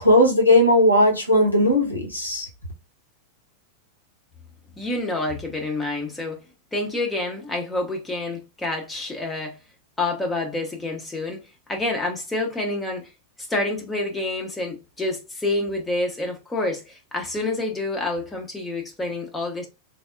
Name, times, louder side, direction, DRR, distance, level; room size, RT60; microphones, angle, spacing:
voice 1, 0.0-2.5, left 1 dB, 85° left, 0.8 m, -17 dB
voice 2, 4.8-6.4 6.7-9.6 10.0-11.4 11.7-13.1 13.5-19.7, left 2 dB, 10° left, 0.6 m, -28 dB
3.4 x 2.0 x 2.4 m
figure-of-eight pair, 90°, 0 cm